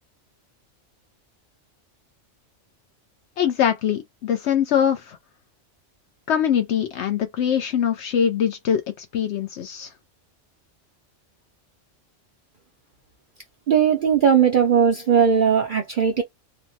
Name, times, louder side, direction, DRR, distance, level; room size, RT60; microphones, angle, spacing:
voice 1, 3.4-5.2 6.3-9.9, left 9 dB, 70° left, 0.8 m, -23 dB
voice 2, 13.7-16.2, right 7 dB, 55° right, 0.6 m, -18 dB
3.2 x 2.1 x 2.6 m
omnidirectional pair, 1.3 m